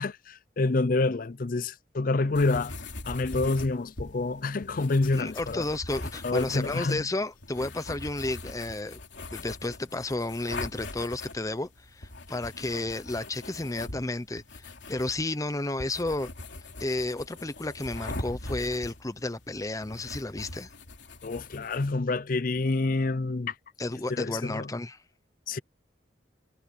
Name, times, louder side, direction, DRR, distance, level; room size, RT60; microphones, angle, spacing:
voice 1, 0.0-2.8 3.1-5.7 6.2-7.0 21.2-23.5 24.1-24.7 25.5-25.6, left 3 dB, 50° left, 0.5 m, -27 dB
sound 1, 2.3-21.9, left 2 dB, 85° left, 3.0 m, -42 dB
voice 2, 5.1-9.0 9.3-16.3 16.8-20.7 23.8-25.0, left 2 dB, 20° left, 0.8 m, -32 dB
head